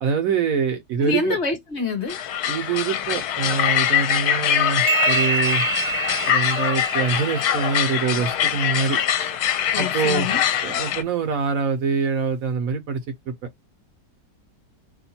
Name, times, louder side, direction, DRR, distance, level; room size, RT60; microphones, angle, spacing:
voice 1, 0.0-1.4 2.5-5.6 6.3-9.0 9.8-10.3 10.6-13.0 13.3-13.4, right 5 dB, 65° right, 1.0 m, -24 dB
voice 2, 1.0-2.2 9.7-10.4, left 4 dB, 45° left, 1.2 m, -26 dB
sound 1, 2.1-11.0, left 10 dB, 75° left, 1.1 m, -23 dB
sound 2, 4.9-8.4, right 6 dB, 85° right, 1.2 m, -27 dB
2.9 x 2.3 x 4.2 m
omnidirectional pair, 1.8 m